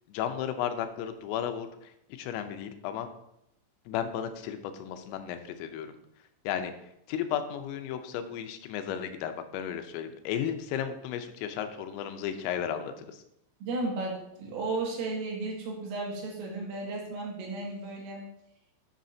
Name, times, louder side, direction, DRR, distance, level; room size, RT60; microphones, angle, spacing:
voice 1, 0.1-1.7 2.1-3.1 3.9-5.9 6.4-6.7 7.1-13.2, left 9 dB, 90° left, 8 dB, 3.4 m, -34 dB
voice 2, 13.6-18.3, right 3 dB, 85° right, -2 dB, 4.6 m, -34 dB
11.5 x 7.1 x 2.8 m, 0.80 s
omnidirectional pair, 5.7 m